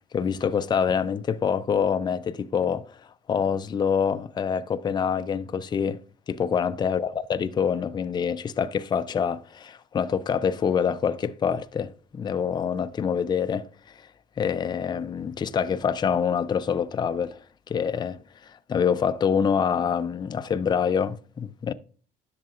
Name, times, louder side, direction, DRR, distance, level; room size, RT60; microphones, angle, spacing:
voice 1, 0.1-3.0 3.3-6.0 6.3-14.1 14.4-21.7, left 7 dB, 25° left, 0.4 m, -26 dB
10.5 x 6.6 x 2.4 m
cardioid pair, 110°, 17 cm